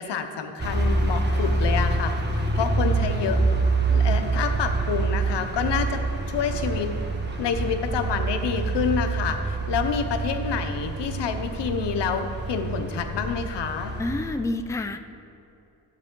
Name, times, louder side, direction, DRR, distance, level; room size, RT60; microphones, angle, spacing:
voice 1, 0.0-3.4 3.9-6.0 6.3-6.9 7.4-13.9, left 6 dB, 90° left, 7 dB, 0.8 m, -28 dB
sound 1, 0.6-14.3, right 3 dB, 25° right, 1.6 m, -26 dB
voice 2, 14.0-15.0, left 2 dB, 10° left, 8 dB, 0.5 m, -28 dB
11.5 x 8.2 x 3.7 m, 2.7 s
cardioid pair, 60°, 41 cm